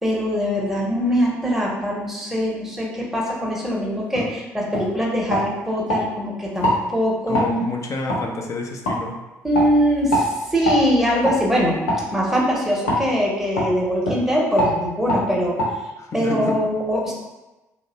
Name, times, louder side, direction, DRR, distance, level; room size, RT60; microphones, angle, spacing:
voice 1, 0.0-7.4 9.4-11.8 12.1-15.6 16.1-17.1, equal, 5° right, -4 dB, 0.7 m, -22 dB
sound 1, 4.1-4.3 4.7-4.9 5.3-6.0 6.6-6.8 7.3-7.5 8.1-8.2 8.8-9.0 9.5-9.7 10.1-10.3 10.6-10.8 11.2-11.4 11.9-12.0 12.9-13.0 13.6-13.7 14.0-14.2 14.6-14.7 15.1-15.2 15.6-15.7, left 1 dB, 80° left, 0.6 m, -22 dB
voice 2, 7.3-9.2 16.0-16.6, left 2 dB, 40° left, 2 dB, 0.5 m, -28 dB
2.5 x 2.0 x 2.8 m, 1.1 s
hypercardioid pair, 50°, 8 cm